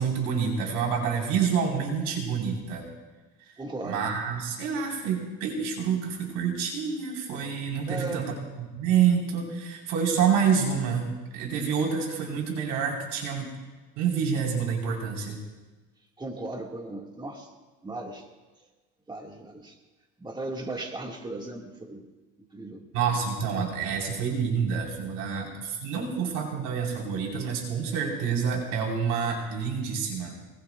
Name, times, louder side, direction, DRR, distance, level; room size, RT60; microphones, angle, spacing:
voice 1, 0.0-2.8 3.8-13.5 14.0-15.4 22.9-30.3, right 6 dB, 85° right, 0 dB, 4.7 m, -28 dB
voice 2, 3.6-4.1 7.9-8.3 16.2-17.5 17.8-18.3 19.1-19.8 20.2-22.1 22.4-22.8, right 2 dB, 15° right, 1 dB, 2.1 m, -37 dB
24.5 x 22.0 x 2.5 m, 1.2 s
cardioid pair, 110°, 31 cm